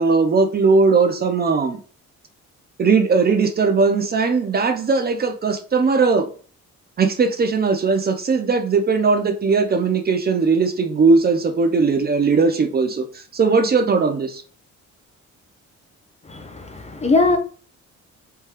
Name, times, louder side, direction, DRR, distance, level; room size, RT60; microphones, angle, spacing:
voice 1, 0.0-1.8 2.8-6.3 7.0-14.4, right 4 dB, 30° right, 0.5 m, -18 dB
voice 2, 16.2-17.4, left 3 dB, 20° left, 0.5 m, -20 dB
2.9 x 2.2 x 3.1 m
cardioid pair, 90°, 30 cm